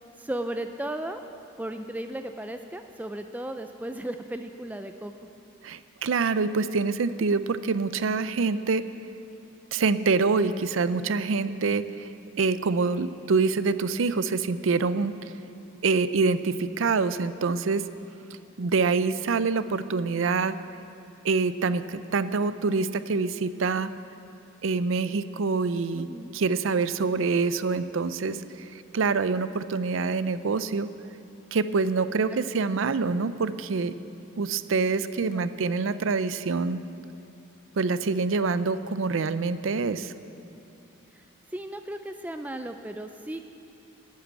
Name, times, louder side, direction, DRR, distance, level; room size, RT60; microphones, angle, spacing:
voice 1, 0.2-1.2 1.6-5.1 11.5-11.6 25.9-26.3 35.2-35.4 41.1-41.2 41.5-43.4, right 1 dB, 10° right, 6 dB, 0.3 m, -35 dB
voice 2, 5.6-8.8 9.7-12.1 12.4-15.1 15.8-17.8 18.6-20.5 21.2-23.9 24.6-26.1 26.3-28.4 28.9-30.9 31.5-33.9 34.4-36.8 37.8-40.1, right 4 dB, 85° right, 13 dB, 0.5 m, -25 dB
12.0 x 8.6 x 8.8 m, 2.8 s
head